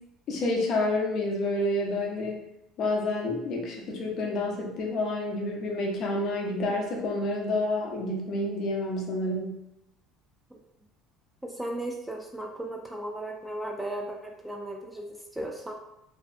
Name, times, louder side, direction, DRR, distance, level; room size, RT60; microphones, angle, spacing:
voice 1, 0.3-2.4 2.8-9.6, left 2 dB, 50° left, -1 dB, 0.6 m, -29 dB
voice 2, 11.4-15.7, right 1 dB, 5° right, 0 dB, 0.3 m, -36 dB
2.6 x 2.2 x 2.5 m, 0.82 s
cardioid pair, 130°, 0 cm